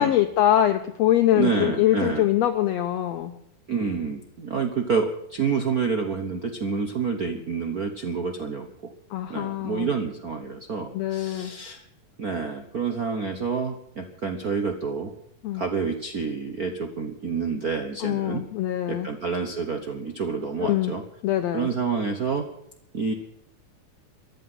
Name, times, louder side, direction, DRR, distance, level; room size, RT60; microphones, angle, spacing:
voice 1, 0.0-3.3 9.1-9.9 10.9-11.5 15.4-15.6 18.0-19.1 20.6-20.9 21.2-21.7, left 12 dB, 70° left, 8 dB, 1.7 m, -23 dB
voice 2, 1.3-2.3 3.7-8.7 9.3-11.8 12.2-15.1 15.5-18.4 18.9-21.0 21.5-22.4 22.9-23.1, right 5 dB, 75° right, 5 dB, 0.8 m, -28 dB
14.5 x 10.0 x 9.5 m, 0.74 s
omnidirectional pair, 3.6 m